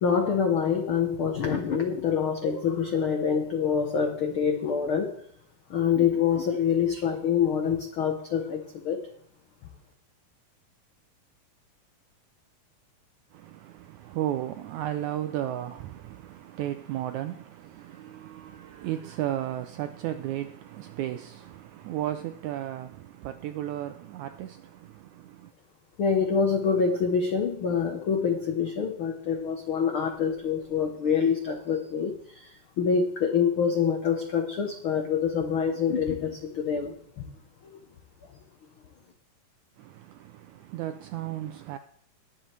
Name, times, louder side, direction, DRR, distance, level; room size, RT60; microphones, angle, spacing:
voice 1, 0.0-5.2 5.7-9.1 26.0-37.2 37.7-37.8, left 6 dB, 80° left, 1.2 m, -26 dB
voice 2, 13.3-25.5 39.8-41.8, right 12 dB, 80° right, 1.7 m, -34 dB
21.0 x 7.6 x 3.3 m
omnidirectional pair, 4.0 m